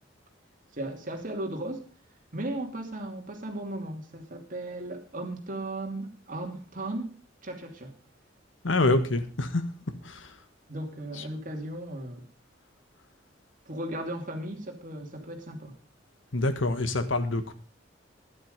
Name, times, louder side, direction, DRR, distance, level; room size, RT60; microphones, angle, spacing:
voice 1, 0.7-1.9 2.3-7.1 7.4-7.9 10.7-12.2 13.7-15.7, right 1 dB, 45° right, 2.8 m, -36 dB
voice 2, 8.6-9.6 10.0-10.4 11.2-11.3 16.3-17.5, left 2 dB, 85° left, 1.6 m, -26 dB
12.5 x 11.5 x 5.2 m
head